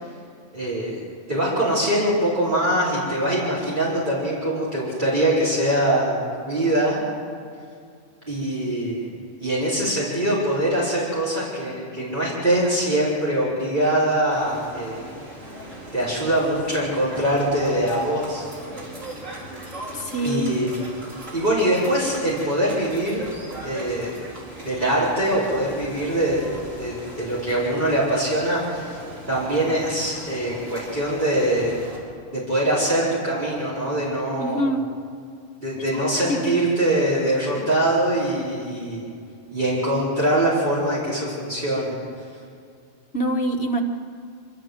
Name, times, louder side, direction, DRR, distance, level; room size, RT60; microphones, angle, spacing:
voice 1, 0.5-0.9 1.3-7.0 8.3-9.1 9.4-15.0 15.9-18.5 20.2-20.7 21.3-23.2 23.6-24.1 24.6-26.5 26.8-29.0 29.3-31.8 32.3-34.7 35.6-39.1 39.5-41.9, right 1 dB, 40° right, -9 dB, 4.7 m, -23 dB
sound 1, 14.3-32.0, right 1 dB, 85° right, 4.5 m, -39 dB
voice 2, 19.9-20.4 34.4-34.8 35.9-36.0 36.3-36.6 37.6-37.7 43.1-43.8, right 1 dB, 55° left, 3 dB, 1.9 m, -25 dB
26.0 x 13.5 x 7.9 m, 2.3 s
omnidirectional pair, 1.3 m